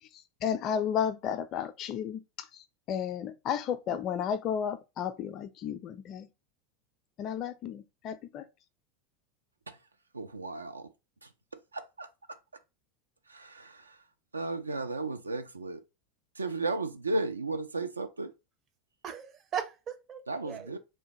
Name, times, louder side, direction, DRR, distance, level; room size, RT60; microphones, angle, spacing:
voice 1, 0.4-2.2 2.5-6.3 7.2-8.4, left 8 dB, 40° left, 0.4 m, -33 dB
voice 2, 10.1-10.8 11.7-12.1 13.3-13.8 14.3-15.8 16.4-18.3 20.3-20.8, right 2 dB, 85° right, 0.3 m, -34 dB
voice 3, 19.0-20.8, right 8 dB, 35° right, 0.5 m, -38 dB
3.2 x 2.2 x 2.8 m
figure-of-eight pair, 80°, 0 cm